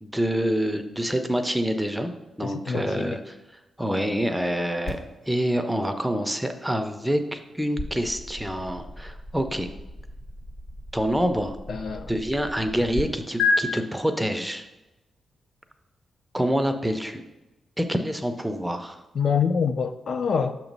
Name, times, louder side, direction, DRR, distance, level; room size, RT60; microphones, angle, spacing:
voice 1, 0.0-2.1 2.4-3.4 3.8-5.0 5.3-9.7 10.9-11.6 12.1-14.7 16.3-17.2 17.8-19.0, equal, 5° right, 7 dB, 0.4 m, -26 dB
voice 2, 2.4-3.2 11.7-12.1 19.1-20.5, left 6 dB, 60° left, 8 dB, 0.3 m, -26 dB
sound 1, 4.8-13.0 13.4-13.5, left 4 dB, 80° left, 1.8 m, -33 dB
6.8 x 3.0 x 5.2 m, 1.0 s
cardioid pair, 110°, 0 cm